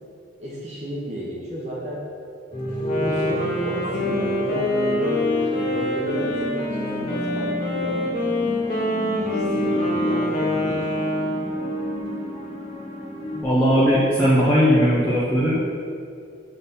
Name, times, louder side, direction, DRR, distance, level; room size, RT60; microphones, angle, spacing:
voice 1, 0.4-2.0 2.8-8.6 9.2-11.1, equal, 35° right, -6 dB, 1.2 m, -33 dB
sound 1, 2.5-13.4, left 1 dB, 30° left, 1.1 m, -29 dB
Wind instrument woodwind instrument, 2.7-11.7, left 1 dB, 45° left, 1.8 m, -26 dB
voice 2, 13.4-15.8, equal, 10° left, -11 dB, 1.2 m, -18 dB
7.8 x 4.1 x 5.7 m, 2.3 s
head